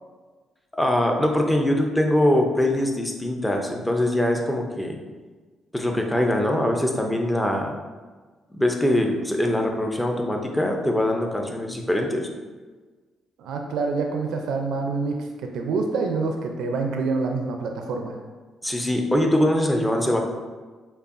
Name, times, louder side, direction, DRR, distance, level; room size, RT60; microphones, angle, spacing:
voice 1, 0.8-5.0 5.7-7.7 8.5-12.3 18.6-20.2, left 1 dB, 10° left, 2 dB, 0.5 m, -22 dB
voice 2, 13.4-15.3 15.5-18.2, right 4 dB, 80° right, 3 dB, 0.4 m, -26 dB
5.3 x 2.3 x 2.5 m, 1.4 s
cardioid pair, 90°, 0 cm